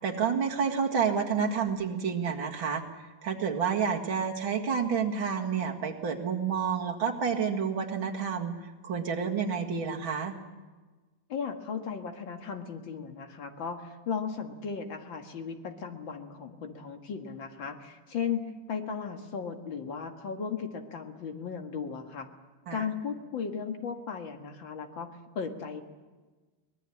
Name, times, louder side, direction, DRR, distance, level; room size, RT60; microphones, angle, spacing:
voice 1, 0.0-2.8 3.2-10.3 22.7-22.8, right 6 dB, 80° right, 2 dB, 2.8 m, -29 dB
voice 2, 11.3-22.3 22.7-25.8, left 6 dB, 75° left, 5 dB, 2.5 m, -36 dB
23.5 x 20.0 x 8.5 m, 1.3 s
omnidirectional pair, 2.1 m